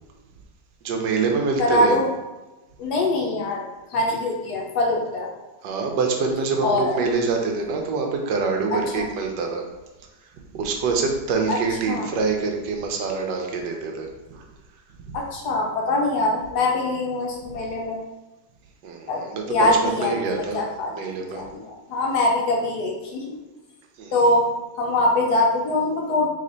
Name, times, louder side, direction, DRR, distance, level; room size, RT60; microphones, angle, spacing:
voice 1, 0.8-2.0 5.6-9.7 10.5-14.4 15.0-15.2 18.8-20.6 20.9-21.4 24.0-24.2, right 4 dB, 90° right, 2 dB, 1.3 m, -25 dB
voice 2, 1.6-2.1 2.8-5.3 6.6-7.0 8.9-9.0 11.5-11.6 11.9-12.1 15.1-18.0 19.1-20.9 21.3-23.4 24.1-24.5 24.8-26.3, left 2 dB, 70° left, -1 dB, 1.3 m, -23 dB
3.5 x 3.2 x 3.8 m, 1.1 s
omnidirectional pair, 1.8 m